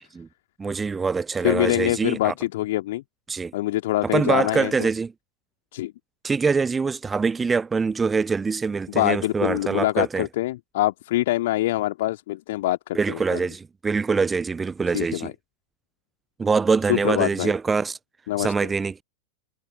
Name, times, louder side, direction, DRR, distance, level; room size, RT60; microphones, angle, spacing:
voice 1, 0.6-2.3 3.3-3.5 4.1-5.1 6.2-10.3 12.9-15.3 16.4-18.0 18.4-19.0, right 4 dB, 15° right, 0.5 m, -24 dB
voice 2, 1.4-3.0 3.5-4.9 5.7-5.9 8.9-13.4 14.9-15.3 16.9-17.5 18.3-18.5, left 16 dB, 55° left, 2.1 m, -24 dB
figure-of-eight pair, 90°, 0 cm